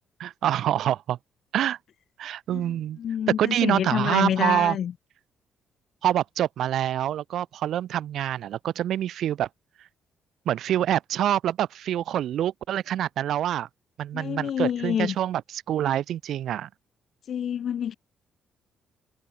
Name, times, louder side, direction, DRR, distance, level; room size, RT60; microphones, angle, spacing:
voice 1, 0.2-1.2 1.5-1.8 2.2-3.0 3.4-4.8 6.0-9.5 10.5-13.7 14.0-16.7, right 11 dB, 75° right, 0.5 m, -26 dB
voice 2, 3.0-4.9 14.1-15.1 17.3-17.9, left 9 dB, 60° left, 1.0 m, -27 dB
cardioid pair, 90°, 0 cm